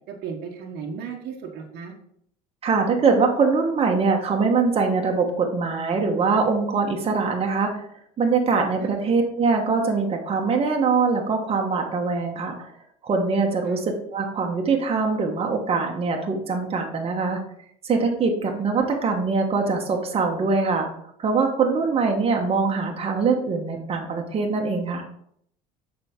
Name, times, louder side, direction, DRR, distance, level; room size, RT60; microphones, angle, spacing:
voice 1, 0.1-1.9 8.8-9.0 13.6-13.8 18.5-18.6, right 6 dB, 55° right, 1 dB, 1.1 m, -35 dB
voice 2, 2.6-7.9 8.2-12.7 13.0-13.8 14.1-17.4 17.8-20.9 21.2-25.0, right 4 dB, 30° right, 2 dB, 1.2 m, -23 dB
6.5 x 4.8 x 3.7 m, 0.69 s
hypercardioid pair, 80°, 20 cm